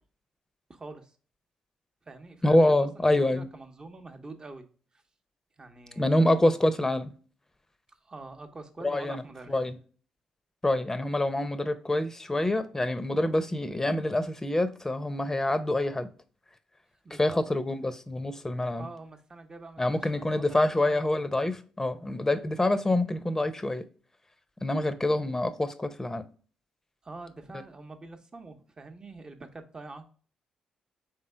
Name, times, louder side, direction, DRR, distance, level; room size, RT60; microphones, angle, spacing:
voice 1, 0.7-1.2 2.0-2.8 3.2-4.6 4.9-5.0 5.6-6.4 7.9-9.6 17.0-17.4 18.8-21.1 27.0-30.0, right 3 dB, 30° right, 0.9 m, -45 dB
voice 2, 2.4-3.5 6.0-7.1 8.8-9.2 9.5-9.8 10.6-16.1 17.2-18.9 19.8-23.8 24.6-26.2, left 1 dB, 20° left, 0.7 m, -26 dB
4.3 x 3.5 x 3.3 m
hypercardioid pair, 45°, 3 cm